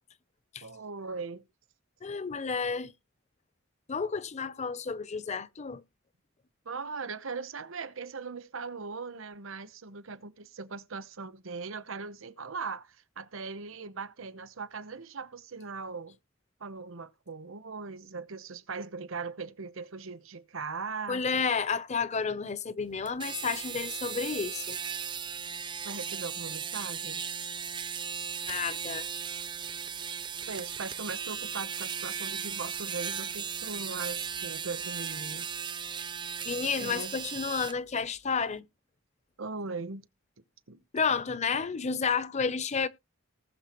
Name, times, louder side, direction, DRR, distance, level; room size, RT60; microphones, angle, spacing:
voice 1, 0.6-1.5 6.6-16.2 16.6-21.5 25.8-27.2 30.5-35.5 36.8-37.2 39.4-40.0 40.7-40.8, right 4 dB, 75° right, 0.9 m, -39 dB
voice 2, 2.0-2.9 3.9-5.8 21.1-24.8 28.5-29.1 36.5-38.6 40.9-42.9, left 5 dB, 35° left, 0.6 m, -31 dB
sound 1, 23.1-37.8, right 7 dB, 25° right, 0.4 m, -37 dB
19.5 x 6.6 x 3.0 m
head